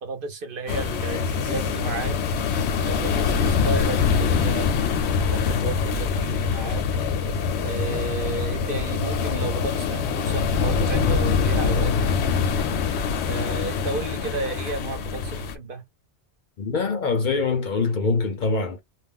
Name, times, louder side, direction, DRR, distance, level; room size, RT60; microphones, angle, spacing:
voice 1, 0.0-2.1 2.8-4.9 5.3-7.1 7.6-12.2 13.3-15.8, right 3 dB, 60° right, 0.8 m, -32 dB
sound 1, 0.7-15.5, left 5 dB, 80° left, 0.9 m, -24 dB
voice 2, 16.6-18.8, left 4 dB, 55° left, 0.6 m, -24 dB
2.4 x 2.1 x 3.5 m
omnidirectional pair, 1.1 m